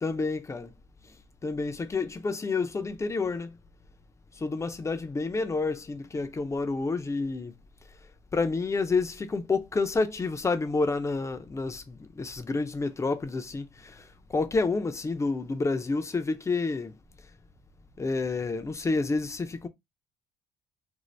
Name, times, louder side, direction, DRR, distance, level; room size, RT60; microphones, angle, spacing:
voice 1, 0.0-0.7 1.4-3.6 4.4-7.5 8.3-16.9 18.0-19.7, left 3 dB, 20° left, 0.5 m, -29 dB
2.6 x 2.0 x 3.1 m
cardioid pair, 85°, 15 cm